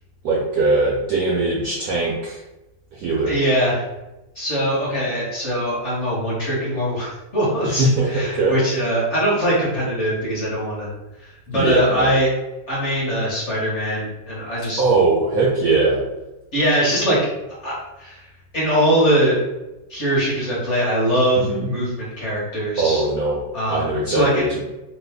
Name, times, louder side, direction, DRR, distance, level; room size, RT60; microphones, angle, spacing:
voice 1, 0.2-2.4 2.9-3.4 7.6-8.6 11.5-12.2 14.8-16.0 21.5-21.7 22.8-23.4 23.7-24.6, right 3 dB, 75° right, -3 dB, 0.8 m, -20 dB
voice 2, 3.3-3.9 4.3-10.9 11.2-12.3 12.7-14.8 16.5-17.2 17.6-18.3 18.5-19.4 19.9-23.0 23.5-24.5, equal, 45° left, -7 dB, 1.0 m, -22 dB
3.1 x 2.2 x 3.4 m, 1.0 s
omnidirectional pair, 2.1 m